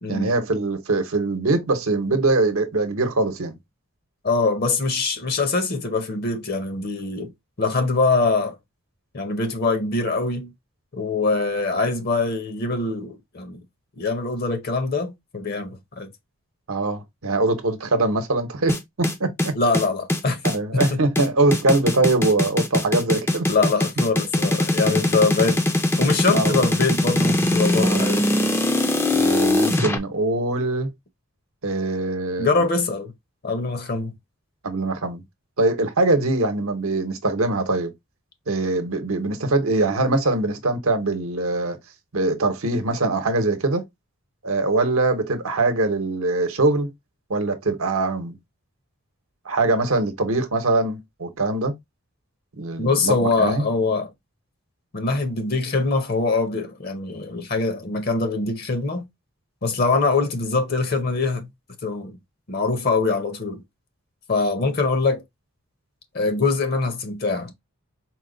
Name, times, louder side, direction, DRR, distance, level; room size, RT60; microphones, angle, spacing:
voice 1, 0.1-3.6 16.7-19.5 20.4-23.5 24.8-25.0 26.3-26.6 27.7-28.0 29.1-30.9 31.6-32.6 34.6-35.2 35.6-37.9 38.5-41.8 42.1-43.8 44.4-46.9 47.3-48.4 49.4-51.7 52.6-53.6, right 2 dB, 75° right, 0.9 m, -22 dB
voice 2, 4.2-7.3 7.6-8.6 9.1-10.5 10.9-13.6 14.0-16.1 19.5-20.4 20.7-21.0 23.5-25.6 26.0-28.2 32.4-33.1 33.4-34.1 52.8-54.1 54.9-59.1 59.6-61.5 61.8-62.2 62.5-63.6 64.3-65.2 66.1-67.5, left 3 dB, 45° left, 0.7 m, -23 dB
sound 1, 18.7-30.0, left 1 dB, 10° left, 0.4 m, -21 dB
4.5 x 2.2 x 3.7 m
head